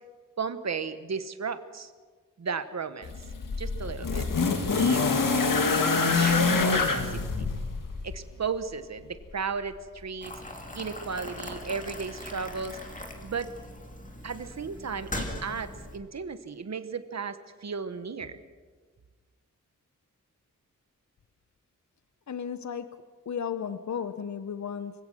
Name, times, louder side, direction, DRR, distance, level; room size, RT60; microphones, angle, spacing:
voice 1, 0.4-1.9 2.4-3.1 3.6-4.2 4.8-5.1 6.1-7.2 8.0-10.3 10.7-12.8 13.2-13.5 14.2-18.4, right 5 dB, 55° right, 11 dB, 1.2 m, -34 dB
sound 1, 3.0-8.2 9.3-9.4, left 4 dB, 75° left, 2.0 m, -25 dB
Boiling, 10.2-16.0, left 1 dB, 25° left, 2.4 m, -40 dB
voice 2, 22.3-22.9 23.3-24.9, left 7 dB, 60° left, 12 dB, 0.8 m, -34 dB
25.5 x 16.5 x 6.3 m, 1.5 s
wide cardioid pair, 130°, 33 cm